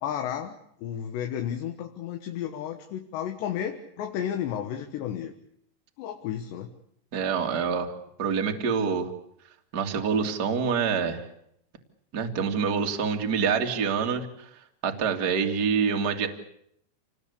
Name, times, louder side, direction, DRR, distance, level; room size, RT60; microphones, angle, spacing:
voice 1, 0.0-5.3 6.0-6.7, left 9 dB, 80° left, 5 dB, 3.5 m, -32 dB
voice 2, 7.1-7.9 8.2-9.1 9.7-11.2 12.1-14.5 14.8-16.3, right 6 dB, 30° right, 3 dB, 2.0 m, -26 dB
28.0 x 19.5 x 8.4 m, 0.72 s
omnidirectional pair, 5.0 m